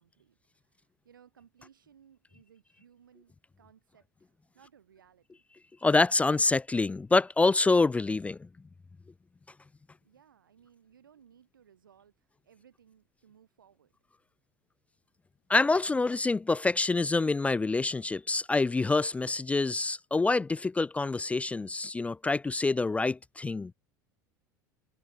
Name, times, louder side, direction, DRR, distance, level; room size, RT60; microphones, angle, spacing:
voice 1, 0.0-5.4 10.0-13.9, right 8 dB, 85° right, 7.8 m, -61 dB
voice 2, 5.8-8.4 15.5-23.7, left 3 dB, 10° left, 0.4 m, -26 dB
hypercardioid pair, 80°, 11 cm